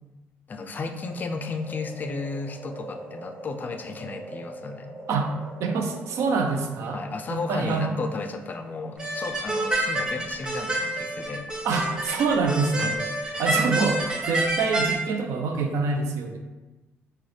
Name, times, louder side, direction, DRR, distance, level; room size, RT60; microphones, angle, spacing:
voice 1, 0.5-4.9 6.9-11.5 12.8-13.0 13.3-13.5, left 4 dB, 35° left, 5 dB, 0.3 m, -34 dB
sound 1, 0.9-11.2 11.6-11.7, right 1 dB, 50° right, 0.8 m, -44 dB
voice 2, 5.6-7.0 7.3-7.9 11.6-13.0 13.4-16.4, right 4 dB, 75° right, 4 dB, 0.4 m, -25 dB
sound 2, 9.0-15.0, right 1 dB, 15° right, 0.5 m, -28 dB
3.1 x 2.2 x 3.8 m, 1.1 s
cardioid pair, 100°, 5 cm